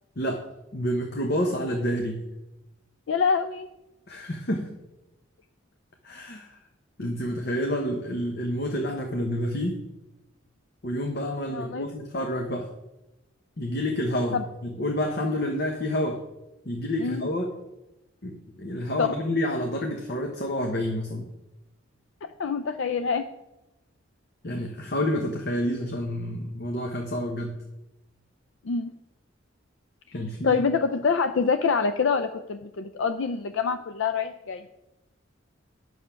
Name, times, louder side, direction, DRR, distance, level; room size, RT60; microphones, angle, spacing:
voice 1, 0.2-2.2 4.1-4.7 6.0-6.6 7.0-9.8 10.8-12.7 13.6-16.2 16.6-17.5 18.2-21.3 24.4-27.6 30.1-30.6, equal, 55° left, 2 dB, 0.9 m, -29 dB
voice 2, 3.1-3.7 11.5-11.9 14.3-14.4 17.0-17.2 19.0-19.1 22.4-23.3 28.6-28.9 30.4-34.7, left 5 dB, 70° left, 9 dB, 0.4 m, -25 dB
9.0 x 6.4 x 5.7 m, 0.97 s
head